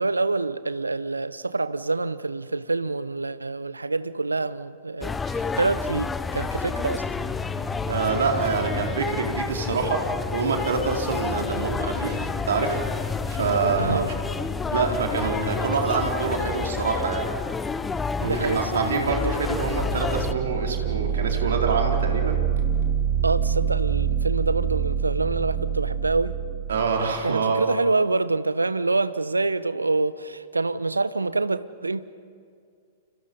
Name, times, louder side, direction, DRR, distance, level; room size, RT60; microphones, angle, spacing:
voice 1, 0.0-7.0 13.8-14.1 18.2-19.4 23.2-26.3 27.2-32.0, right 3 dB, 80° right, 15 dB, 0.9 m, -26 dB
sound 1, 5.0-20.3, left 4 dB, 10° left, 0.9 m, -30 dB
sound 2, 7.1-16.1, left 5 dB, 40° left, 6.3 m, -37 dB
voice 2, 7.9-14.0 14.7-17.3 18.2-22.4 26.7-27.6, right 4 dB, 65° right, 1 dB, 4.3 m, -26 dB
sound 3, 19.5-27.2, right 8 dB, 20° right, 3.2 m, -26 dB
30.0 x 29.0 x 5.5 m, 2.3 s
figure-of-eight pair, 105°, 0 cm